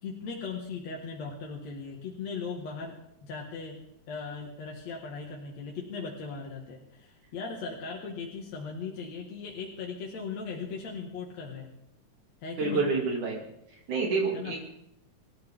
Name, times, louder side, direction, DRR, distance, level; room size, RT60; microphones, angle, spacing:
voice 1, 0.0-2.9 3.2-3.8 4.1-11.7 12.4-12.8 14.3-14.5, left 5 dB, 60° left, -1 dB, 3.1 m, -38 dB
voice 2, 12.6-13.4 13.9-14.7, right 4 dB, 75° right, -1 dB, 4.1 m, -28 dB
27.0 x 14.5 x 3.7 m, 0.78 s
omnidirectional pair, 3.5 m